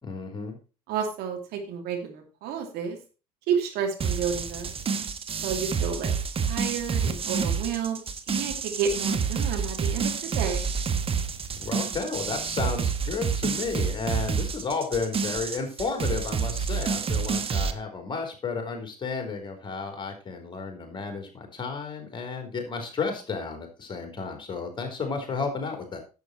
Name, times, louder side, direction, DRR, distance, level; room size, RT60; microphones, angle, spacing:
voice 1, 0.0-0.6 11.6-26.0, left 4 dB, 25° left, 4 dB, 3.7 m, -32 dB
voice 2, 0.9-3.0 3.5-4.7 5.4-6.1 6.5-8.0 8.3-10.7, right 7 dB, 55° right, 3 dB, 2.8 m, -30 dB
sound 1, 4.0-17.7, right 6 dB, 30° right, 1.1 m, -28 dB
11.0 x 7.4 x 4.4 m, 0.33 s
figure-of-eight pair, 60°, 20 cm